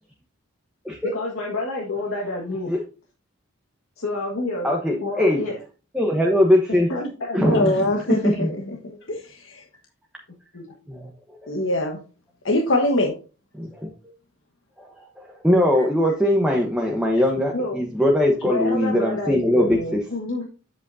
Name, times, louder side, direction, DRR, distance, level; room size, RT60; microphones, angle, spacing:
voice 1, 1.0-2.7 4.0-4.7 5.0-5.6 6.7-7.5 8.5-9.0 10.5-10.7 17.5-17.8 18.4-20.5, left 2 dB, 80° left, -3 dB, 1.8 m, -29 dB
voice 2, 4.6-5.4 5.9-6.9 7.3-7.9 8.4-8.5 10.9-11.1 11.4-11.5 13.6-13.9 14.8-20.0, left 1 dB, 5° right, 0 dB, 1.0 m, -21 dB
voice 3, 7.4-8.5 9.1-9.6 11.5-12.0 12.4-13.1, left 1 dB, 65° left, 1 dB, 1.2 m, -22 dB
8.0 x 7.8 x 2.7 m, 0.34 s
head